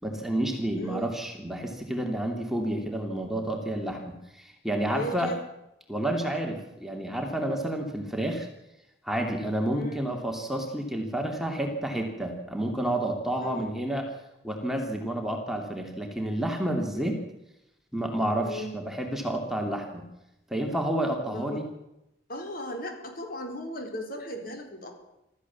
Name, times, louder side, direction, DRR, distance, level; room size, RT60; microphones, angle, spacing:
voice 1, 0.0-5.3 5.9-8.5 9.0-14.1 14.4-17.2 17.9-20.0 20.5-21.6, right 1 dB, ahead, 2 dB, 2.9 m, -30 dB
voice 2, 0.7-1.1 4.8-5.4 9.7-10.1 13.4-13.7 16.9-17.2 18.4-18.7 21.3-21.6 22.3-25.0, equal, 55° left, 3 dB, 4.5 m, -37 dB
25.5 x 14.5 x 7.3 m, 0.90 s
head